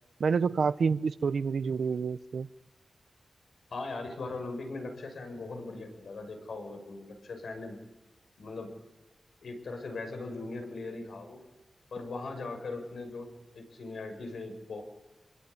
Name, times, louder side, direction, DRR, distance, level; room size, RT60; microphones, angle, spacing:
voice 1, 0.2-2.5, right 5 dB, 75° right, 14 dB, 0.9 m, -28 dB
voice 2, 3.7-7.8 8.4-8.7 9.4-11.4 11.9-14.8, left 3 dB, 90° left, 5 dB, 6.4 m, -39 dB
27.0 x 22.0 x 9.7 m, 1.0 s
wide cardioid pair, 165°, 0 cm